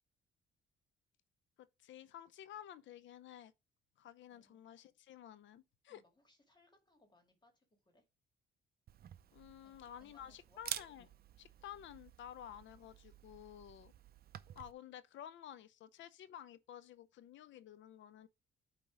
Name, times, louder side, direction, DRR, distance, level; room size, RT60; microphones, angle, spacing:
voice 1, 1.6-3.5 4.0-6.0 9.3-13.9 14.6-18.3, left 10 dB, 70° left, 0.6 m, -53 dB
voice 2, 4.3-4.6 5.9-8.1 9.6-10.6, left 1 dB, 20° left, 2.0 m, -70 dB
Camera, 8.9-14.7, right 10 dB, 50° right, 0.5 m, -50 dB
8.7 x 3.0 x 4.9 m
cardioid pair, 90°, 20 cm